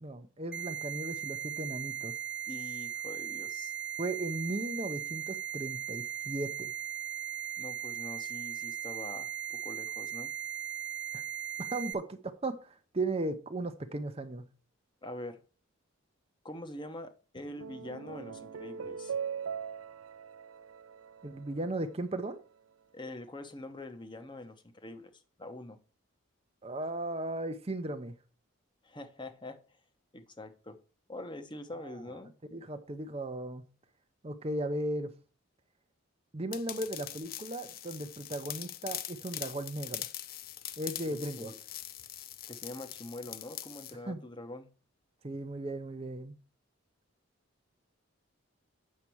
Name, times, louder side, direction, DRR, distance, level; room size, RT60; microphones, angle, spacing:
voice 1, 0.0-2.1 4.0-6.7 11.1-11.2 11.6-14.4 21.2-22.4 26.6-28.1 31.8-32.0 32.5-33.6 34.2-35.1 36.3-40.1 40.8-41.5 44.1-44.2 45.2-46.3, right 2 dB, 30° right, 8 dB, 0.6 m, -36 dB
sound 1, 0.5-11.9, right 10 dB, 5° right, 1.0 m, -38 dB
voice 2, 2.5-3.7 7.6-10.3 15.0-15.4 16.4-19.1 22.9-25.8 28.8-29.8 30.1-30.8 31.1-32.3 41.0-41.5 42.5-44.7, left 1 dB, 20° left, 9 dB, 0.9 m, -44 dB
sound 2, 17.3-21.9, right 7 dB, 75° right, 0.5 m, -41 dB
sound 3, 36.5-43.9, left 12 dB, 45° left, 0.5 m, -42 dB
8.5 x 6.6 x 4.6 m, 0.36 s
head